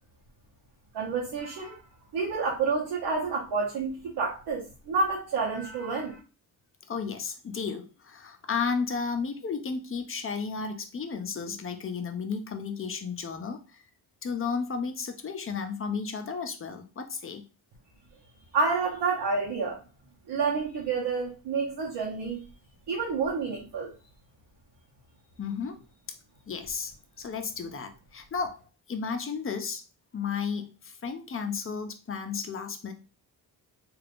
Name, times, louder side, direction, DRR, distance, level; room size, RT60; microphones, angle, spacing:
voice 1, 0.9-1.9 2.1-6.2 18.5-19.8 20.3-22.4 22.9-23.9, right 4 dB, 80° right, -2 dB, 0.9 m, -29 dB
voice 2, 6.9-13.8 14.2-17.4 25.4-25.8 26.5-26.9 27.2-29.8 30.1-32.9, left 5 dB, 35° left, 7 dB, 0.6 m, -33 dB
3.3 x 2.5 x 2.5 m, 0.31 s
cardioid pair, 85°, 41 cm